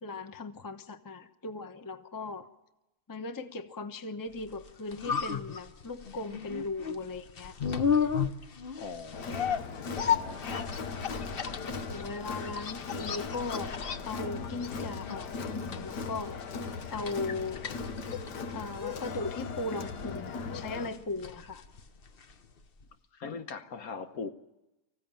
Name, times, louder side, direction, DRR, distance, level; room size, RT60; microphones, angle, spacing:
voice 1, 0.0-2.5 3.1-7.5 11.9-13.7 14.0-16.4 16.9-17.6 18.5-21.6, left 3 dB, 15° left, 0.8 m, -38 dB
sound 1, 4.5-22.5 22.8-22.9, left 7 dB, 45° left, 0.9 m, -35 dB
voice 2, 8.8-10.6 23.1-24.3, left 5 dB, 60° left, 1.4 m, -41 dB
Crowd, 9.1-20.9, left 4 dB, 80° left, 1.9 m, -38 dB
25.0 x 15.5 x 9.0 m
omnidirectional pair, 1.8 m